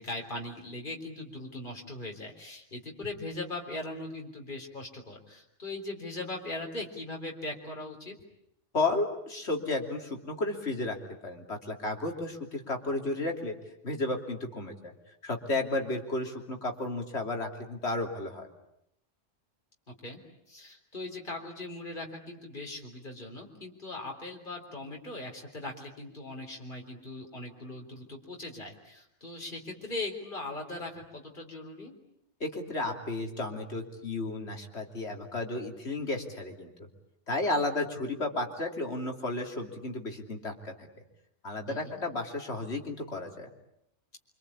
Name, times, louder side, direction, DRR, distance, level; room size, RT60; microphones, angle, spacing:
voice 1, 0.0-8.1 19.9-20.2 20.5-32.0 41.7-42.0, left 2 dB, 45° left, 1 dB, 4.1 m, -40 dB
voice 2, 8.7-11.0 11.2-13.5 13.8-14.9 15.2-18.5 32.4-36.7 37.3-40.9 41.4-43.5, left 2 dB, 60° left, 2 dB, 3.4 m, -33 dB
26.5 x 25.5 x 8.6 m, 0.78 s
omnidirectional pair, 1.2 m